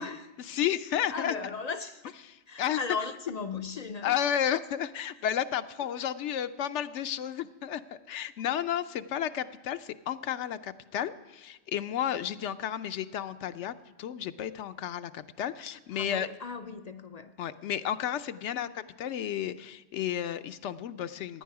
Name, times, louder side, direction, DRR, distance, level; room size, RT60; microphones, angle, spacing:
voice 1, 0.5-1.4 2.2-2.8 4.0-7.8 8.1-16.3 17.4-21.4, left 10 dB, 85° left, 0.9 m, -32 dB
voice 2, 1.1-2.1 2.5-4.2 15.9-17.3, left 5 dB, 55° left, 0.4 m, -37 dB
16.0 x 10.0 x 4.7 m
omnidirectional pair, 1.2 m